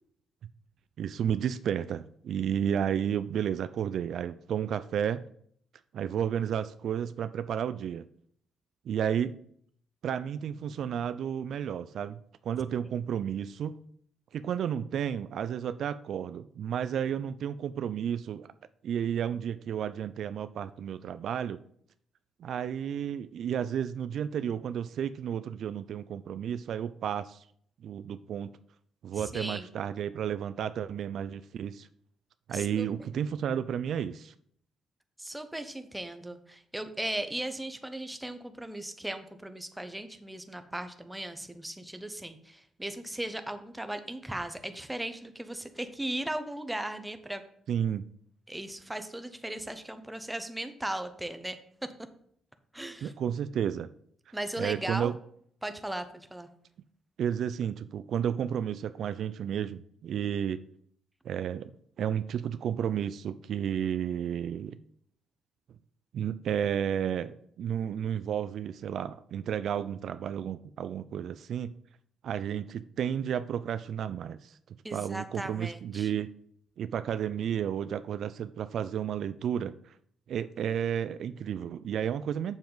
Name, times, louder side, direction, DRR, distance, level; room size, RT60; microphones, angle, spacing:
voice 1, 1.0-5.2 5.9-8.1 8.9-9.4 10.0-13.8 14.3-18.5 18.8-21.6 22.4-27.4 27.8-28.5 29.0-31.9 32.5-34.3 47.7-48.1 53.0-53.9 54.6-55.1 57.2-60.6 61.2-61.7 62.0-64.8 66.1-71.7 72.2-74.6 74.9-76.3 76.8-79.9 80.3-82.6, right 9 dB, 65° right, 13 dB, 0.3 m, -32 dB
voice 2, 29.1-29.7 32.5-33.1 35.2-47.4 48.5-51.9 52.7-53.1 54.3-55.1 55.6-56.5 74.8-76.1, right 1 dB, 5° right, 9 dB, 0.8 m, -37 dB
7.1 x 6.9 x 3.9 m, 0.65 s
cardioid pair, 90°, 0 cm